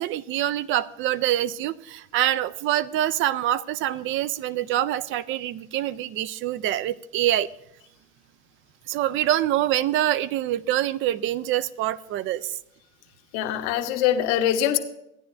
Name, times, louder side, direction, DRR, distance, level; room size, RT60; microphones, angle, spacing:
voice 1, 0.0-7.5 8.9-12.6, right 13 dB, 35° right, 17 dB, 0.4 m, -25 dB
voice 2, 13.3-14.8, left 10 dB, 60° left, 6 dB, 1.2 m, -23 dB
15.5 x 10.0 x 2.5 m, 0.82 s
hypercardioid pair, 90°, 40 cm